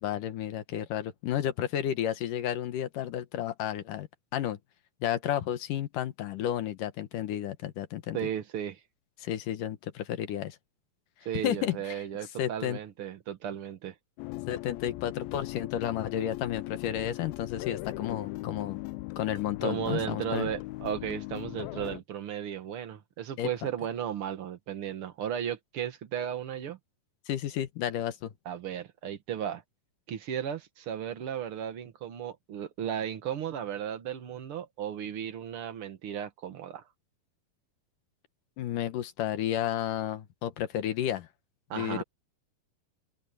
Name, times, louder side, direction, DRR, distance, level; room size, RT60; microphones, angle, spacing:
voice 1, 0.0-4.1 4.3-4.6 5.0-8.3 9.2-10.6 11.4-12.0 12.4-12.8 14.5-18.8 19.2-20.5 23.4-23.5 27.3-28.3 38.6-41.3 41.7-42.0, left 11 dB, 70° left, 2.6 m, -32 dB
voice 2, 8.1-8.8 11.2-13.9 19.6-26.8 28.4-29.6 30.1-36.8 41.7-42.0, right 9 dB, 55° right, 1.6 m, -35 dB
sound 1, 14.2-22.0, left 20 dB, 90° left, 2.5 m, -39 dB
omnidirectional pair, 4.1 m